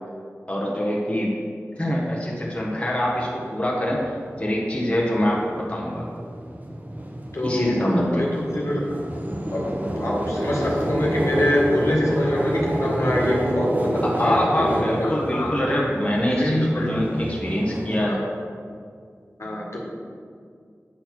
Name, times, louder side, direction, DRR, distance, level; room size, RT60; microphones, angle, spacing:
voice 1, 0.5-1.4 1.8-4.1 4.4-6.1 7.4-8.3 14.0-18.2, equal, 20° left, -4 dB, 1.5 m, -24 dB
sound 1, 2.5-2.6 3.1-18.0, right 1 dB, 30° right, 0.9 m, -29 dB
voice 2, 7.3-8.8 9.5-15.7 16.4-16.9 19.4-19.8, left 1 dB, 60° left, -4 dB, 1.8 m, -24 dB
8.9 x 4.3 x 6.0 m, 2.2 s
wide cardioid pair, 45°, 5 cm